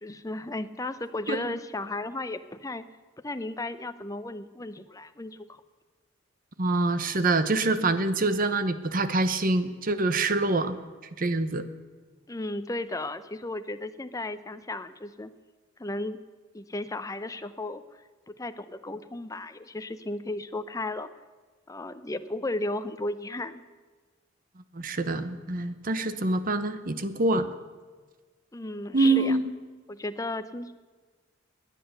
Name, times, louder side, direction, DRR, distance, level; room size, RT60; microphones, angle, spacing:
voice 1, 0.0-2.8 3.2-5.6 12.3-15.3 15.8-16.2 16.5-17.8 18.4-21.1 21.7-23.6 28.5-29.4 29.9-30.7, left 2 dB, 15° left, 11 dB, 0.7 m, -34 dB
voice 2, 6.6-10.8 11.2-11.7 24.7-27.5 28.9-29.5, right 2 dB, 45° right, 11 dB, 0.9 m, -25 dB
19.0 x 10.5 x 6.7 m, 1.4 s
head